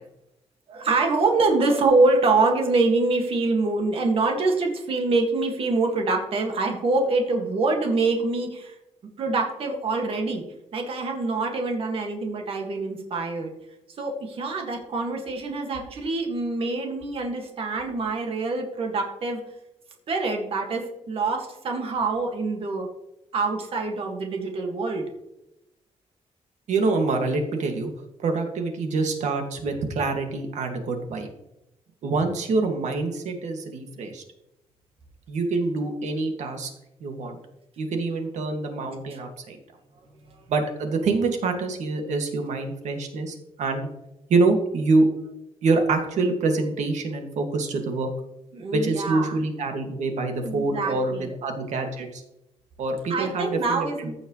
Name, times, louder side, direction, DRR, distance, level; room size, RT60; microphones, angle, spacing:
voice 1, 0.7-8.7 9.2-10.4 10.7-13.5 14.0-19.4 20.1-22.9 23.3-25.1 48.5-49.4 50.4-51.3 53.1-54.1, right 3 dB, 50° right, 2 dB, 1.9 m, -25 dB
voice 2, 26.7-27.9 28.2-31.3 32.0-34.2 35.3-36.7 37.0-37.4 37.8-39.6 40.5-43.9 44.3-45.1 45.6-48.1 48.7-52.2 52.8-54.1, right 3 dB, 80° right, 4 dB, 2.0 m, -25 dB
15.0 x 6.4 x 3.1 m, 0.88 s
wide cardioid pair, 175°, 12 cm